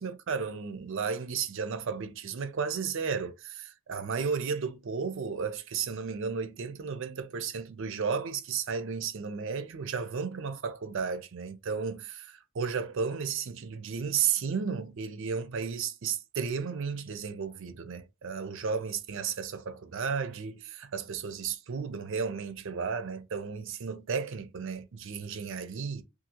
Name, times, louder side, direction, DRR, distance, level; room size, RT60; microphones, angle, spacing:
voice 1, 0.0-26.0, right 6 dB, 65° right, 0.5 m, -33 dB
2.7 x 2.5 x 2.8 m
head